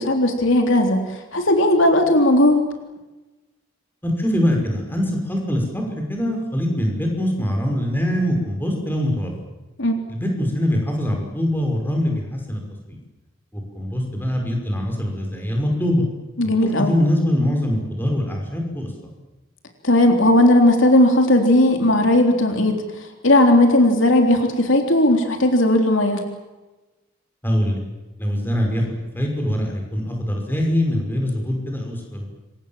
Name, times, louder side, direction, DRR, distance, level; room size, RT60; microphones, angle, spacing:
voice 1, 0.0-2.6 9.8-10.0 16.4-16.9 19.8-22.8 23.2-26.3, left 1 dB, 65° left, 4 dB, 3.5 m, -16 dB
voice 2, 4.0-5.8 6.1-9.3 10.1-12.6 12.9-13.0 13.5-16.0 16.4-18.9 27.4-27.8 28.2-28.9 29.1-32.3, equal, 10° left, 1 dB, 5.9 m, -23 dB
27.5 x 25.0 x 7.5 m, 1.1 s
head